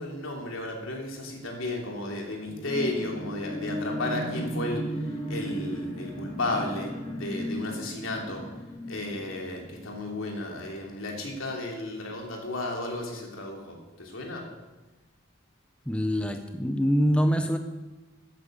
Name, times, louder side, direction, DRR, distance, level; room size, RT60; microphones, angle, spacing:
voice 1, 0.0-5.0 5.3-8.5 8.9-14.5, left 2 dB, 90° left, 1 dB, 3.0 m, -33 dB
sound 1, 2.4-10.2 10.7-10.8, equal, 25° left, 2.6 m, -35 dB
voice 2, 15.9-17.6, equal, 5° left, 6 dB, 0.6 m, -24 dB
14.0 x 9.0 x 6.6 m, 1.1 s
head